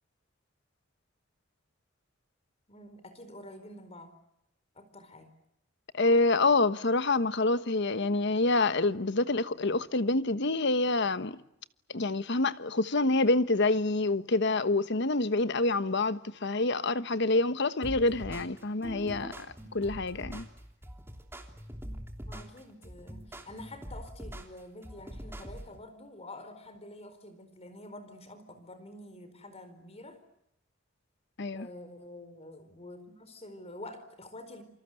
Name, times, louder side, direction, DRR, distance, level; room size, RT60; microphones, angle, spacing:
voice 1, 2.7-4.1 4.7-5.3 22.3-30.2 31.5-34.6, left 1 dB, 35° left, 4.4 m, -47 dB
voice 2, 5.9-11.4 11.9-20.5 31.4-31.7, left 2 dB, 60° left, 1.2 m, -27 dB
sound 1, 17.8-25.8, equal, 15° right, 3.1 m, -43 dB
28.5 x 25.0 x 7.9 m
head